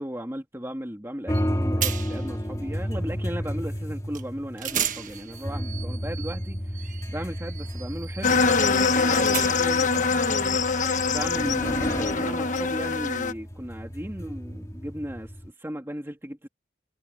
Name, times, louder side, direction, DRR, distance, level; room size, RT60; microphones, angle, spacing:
voice 1, 0.0-10.4 11.0-16.5, equal, 15° right, 2.3 m, -36 dB
sound 1, 1.3-15.5, equal, 20° left, 2.3 m, -32 dB
sound 2, 1.3-1.5 1.8-2.3 4.1-4.3 4.6-9.9, right 10 dB, 45° right, 1.4 m, -35 dB
sound 3, 8.2-13.3, left 4 dB, 45° left, 1.3 m, -24 dB
head